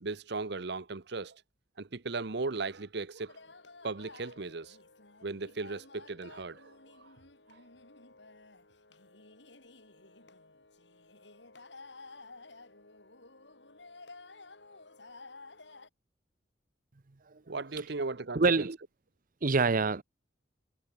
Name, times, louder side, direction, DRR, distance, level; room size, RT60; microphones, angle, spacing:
voice 1, 0.0-1.4 1.8-3.4 3.8-4.8 5.2-7.1 7.5-7.6 17.5-18.7, right 3 dB, 65° right, 1.0 m, -37 dB
sound 1, 3.3-15.9, left 3 dB, 75° left, 5.4 m, -53 dB
voice 2, 18.3-18.8 19.4-20.0, right 4 dB, 50° right, 0.8 m, -26 dB
head